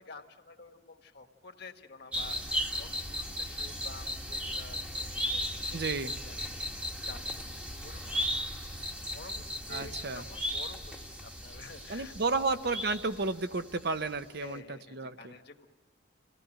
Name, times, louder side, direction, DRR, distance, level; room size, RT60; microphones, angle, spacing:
voice 1, 0.0-12.6 14.4-15.7, left 3 dB, 55° left, 6 dB, 1.5 m, -51 dB
sound 1, 2.1-13.8 14.0-14.1, equal, 5° right, 1.1 m, -36 dB
voice 2, 5.7-6.1 9.7-10.2 11.9-14.6 14.9-15.3, right 3 dB, 55° right, 11 dB, 0.8 m, -32 dB
27.0 x 17.5 x 9.0 m, 1.5 s
head